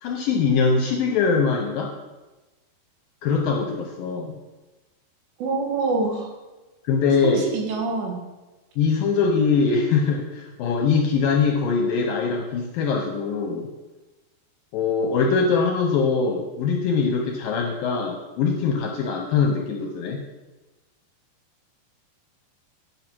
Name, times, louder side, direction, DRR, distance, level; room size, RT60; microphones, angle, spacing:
voice 1, 0.0-1.9 3.2-4.3 6.9-7.5 8.8-13.7 14.7-20.2, left 5 dB, 75° left, 2 dB, 2.1 m, -22 dB
voice 2, 5.4-6.3 7.2-8.2, right 3 dB, 80° right, 1 dB, 3.7 m, -25 dB
9.5 x 5.6 x 6.1 m, 1.1 s
omnidirectional pair, 4.9 m